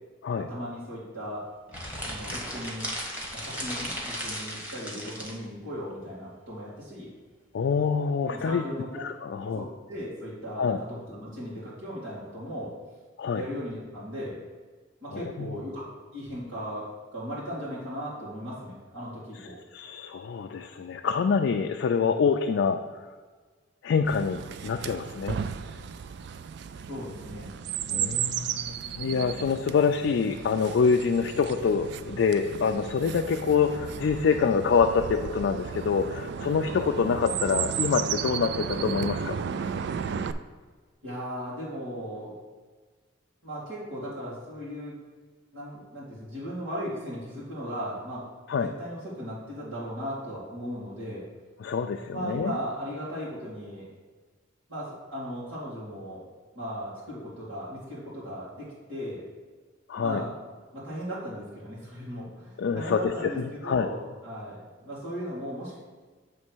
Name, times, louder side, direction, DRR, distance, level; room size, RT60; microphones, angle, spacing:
voice 1, 0.4-1.4 2.1-2.9 3.3-7.1 8.3-9.0 9.4-12.7 13.3-14.4 15.0-19.6 26.9-27.6 41.0-42.3 43.4-44.9 45.5-48.2 48.5-51.2 52.1-53.9 54.7-56.2 56.5-59.2 60.0-60.3 60.7-65.8, equal, 80° right, -10 dB, 2.1 m, -37 dB
sound 1, 1.7-5.4, equal, 10° right, 1.2 m, -36 dB
voice 2, 7.5-8.6 9.0-9.7 10.6-10.8 13.2-13.4 15.1-15.6 19.7-22.8 23.8-25.4 27.9-39.4 48.5-48.7 51.6-52.5 59.9-60.2 62.6-63.9, left 5 dB, 65° left, 4 dB, 0.3 m, -26 dB
Chirp tweet, 24.0-40.3, right 8 dB, 60° right, 0.3 m, -34 dB
7.5 x 3.2 x 6.1 m, 1.4 s
head